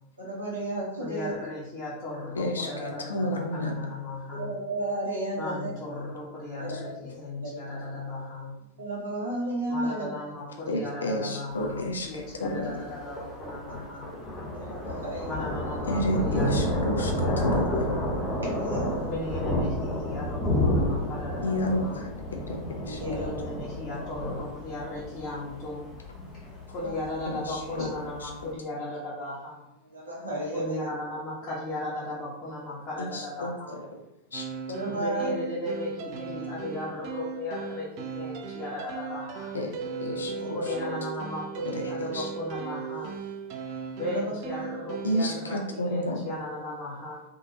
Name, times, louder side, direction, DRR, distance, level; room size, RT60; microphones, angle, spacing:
voice 1, 0.2-1.3 2.8-2.9 4.3-5.7 6.6-6.9 7.2-7.5 8.8-10.1 12.6-12.7 14.5-15.3 18.4-18.9 19.3-19.4 22.9-23.4 24.9-25.0 26.3-26.9 29.9-30.9 34.7-35.3 40.2-40.8 44.0-44.7, right 1 dB, 70° right, -3 dB, 0.9 m, -33 dB
voice 2, 1.0-4.5 5.4-8.6 9.7-14.1 15.2-18.1 19.0-22.0 23.0-25.9 26.7-29.6 30.5-33.8 34.9-39.5 40.5-43.1 44.0-47.2, left 1 dB, 35° left, -7 dB, 1.1 m, -36 dB
voice 3, 2.3-3.7 6.7-6.8 10.7-12.6 15.9-18.0 21.4-23.0 27.2-27.9 28.2-28.3 33.0-33.8 34.3-34.5 34.8-34.9 39.5-40.7 41.6-42.3 45.0-46.2, equal, 70° left, 2 dB, 0.6 m, -31 dB
Thunder, 11.5-28.4, left 1 dB, 10° left, 0.9 m, -31 dB
sound 1, 34.3-45.3, right 5 dB, 45° right, 0.4 m, -37 dB
3.6 x 2.8 x 2.7 m, 0.88 s
figure-of-eight pair, 90°, 0 cm